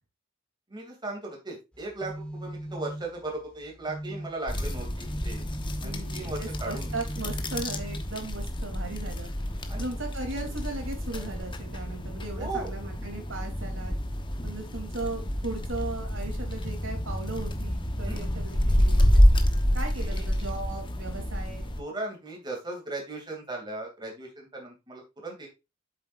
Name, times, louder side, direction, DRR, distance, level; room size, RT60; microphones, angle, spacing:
voice 1, 0.7-5.4 5.8-6.9 9.0-9.1 9.7-9.9 12.4-12.7 18.0-18.2 20.0-20.3 21.8-25.5, right 2 dB, 20° right, 0 dB, 2.6 m, -37 dB
sound 1, 1.7-8.6, right 1 dB, 5° left, 1.4 m, -40 dB
sound 2, 4.5-21.8, equal, 25° left, 1.0 m, -28 dB
voice 2, 5.8-9.3 9.8-13.9 14.4-19.2 19.7-21.7, right 2 dB, 80° right, 3 dB, 3.1 m, -37 dB
8.1 x 7.5 x 2.5 m, 0.25 s
head